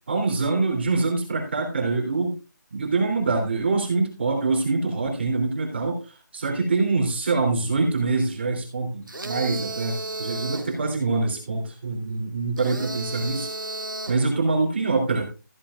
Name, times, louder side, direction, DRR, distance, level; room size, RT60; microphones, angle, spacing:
voice 1, 0.1-2.4 2.7-13.5 14.1-15.2, right 3 dB, 35° right, 0 dB, 3.1 m, -25 dB
sound 1, 9.1-10.8 12.6-14.3, right 2 dB, 85° right, 2.1 m, -33 dB
14.5 x 10.0 x 2.5 m, 0.32 s
figure-of-eight pair, 170°, 11 cm